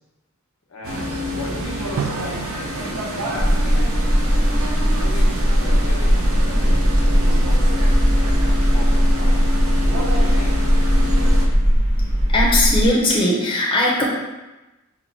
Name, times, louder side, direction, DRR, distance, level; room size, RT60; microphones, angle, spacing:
voice 1, 0.7-3.9 4.9-6.2 6.5-9.4 9.8-10.6, left 2 dB, 80° left, -2 dB, 0.8 m, -37 dB
sound 1, 0.8-11.5, equal, 85° right, 0.7 m, -27 dB
Drum, 2.0-4.7, right 5 dB, 70° right, 0.3 m, -34 dB
sound 2, 3.4-12.9, equal, 30° right, 0.8 m, -18 dB
voice 2, 12.3-14.0, left 1 dB, 25° left, -4 dB, 0.6 m, -18 dB
4.4 x 2.3 x 4.1 m, 1.0 s
head